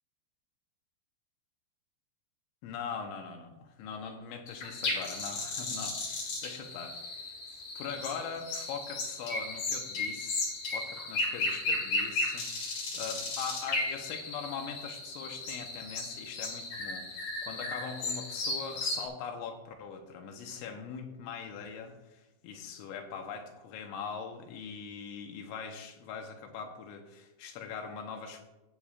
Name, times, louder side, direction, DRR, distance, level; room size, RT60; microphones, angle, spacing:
voice 1, 2.6-7.0 7.5-28.4, left 6 dB, 85° left, 4 dB, 3.4 m, -41 dB
sound 1, 4.5-19.0, left 2 dB, 50° left, 2.7 m, -35 dB
15.0 x 8.4 x 2.4 m, 1.0 s
omnidirectional pair, 5.1 m